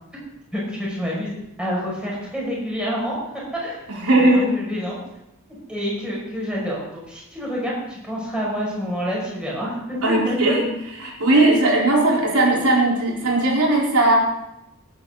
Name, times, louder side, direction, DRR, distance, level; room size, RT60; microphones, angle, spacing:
voice 1, 0.5-3.2 3.6-3.8 4.2-5.0 5.7-10.6 11.3-11.6, equal, 5° right, -5 dB, 5.9 m, -28 dB
voice 2, 4.0-4.5 10.0-10.7 11.0-14.1, right 2 dB, 85° right, -3 dB, 4.3 m, -18 dB
19.0 x 9.4 x 4.0 m, 0.86 s
head